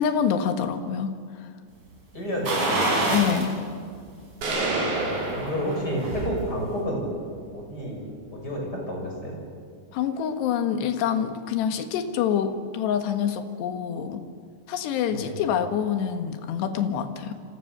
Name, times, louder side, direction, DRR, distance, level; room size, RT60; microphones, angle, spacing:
voice 1, 0.0-1.5 3.1-3.6 9.9-14.3 14.7-17.3, left 8 dB, 70° left, 7 dB, 3.5 m, -26 dB
voice 2, 2.1-2.7 4.6-7.1 7.5-8.0 8.3-9.4 15.1-15.4, equal, 20° left, -1 dB, 6.4 m, -30 dB
sound 1, 2.4-3.5 3.9-4.0 5.5-6.3 6.7-6.8, right 2 dB, 40° right, 6.6 m, -25 dB
sound 2, 4.4-6.4, right 2 dB, 60° right, 6.3 m, -28 dB
28.5 x 26.0 x 6.8 m, 2.1 s
omnidirectional pair, 5.2 m